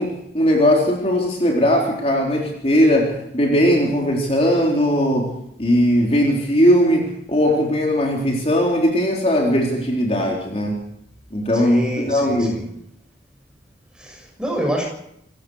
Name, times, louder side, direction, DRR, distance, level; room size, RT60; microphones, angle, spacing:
voice 1, 0.0-5.3 5.6-10.8 11.3-12.6, equal, 35° left, 0 dB, 4.0 m, -19 dB
voice 2, 11.5-12.6 14.0-14.9, equal, 5° right, 0 dB, 7.1 m, -27 dB
28.0 x 15.5 x 6.6 m, 0.75 s
head